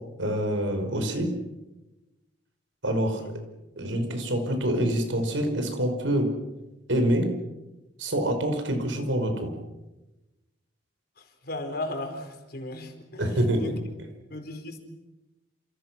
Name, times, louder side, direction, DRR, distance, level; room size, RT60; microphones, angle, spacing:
voice 1, 0.2-1.3 2.8-3.2 3.8-6.3 6.9-7.3 8.0-9.5 13.2-13.8, right 1 dB, 80° right, 5 dB, 5.4 m, -26 dB
voice 2, 11.2-13.8 14.3-14.8, left 1 dB, 55° left, 5 dB, 4.6 m, -36 dB
28.5 x 28.5 x 6.2 m, 1.0 s
head